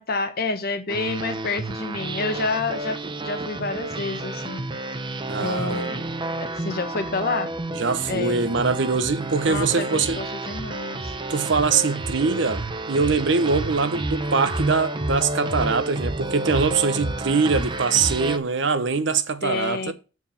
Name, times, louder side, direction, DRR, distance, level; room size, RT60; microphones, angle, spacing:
voice 1, 0.0-3.0 3.2-4.6 5.4-6.0 6.4-7.5 8.1-8.5 9.5-11.2 19.4-19.9, left 3 dB, 55° left, 1.1 m, -28 dB
sound 1, 0.9-18.4, right 2 dB, 25° right, 0.7 m, -30 dB
voice 2, 5.3-5.8 7.8-10.2 11.3-19.9, right 4 dB, 65° right, 0.8 m, -23 dB
7.6 x 4.7 x 5.5 m
head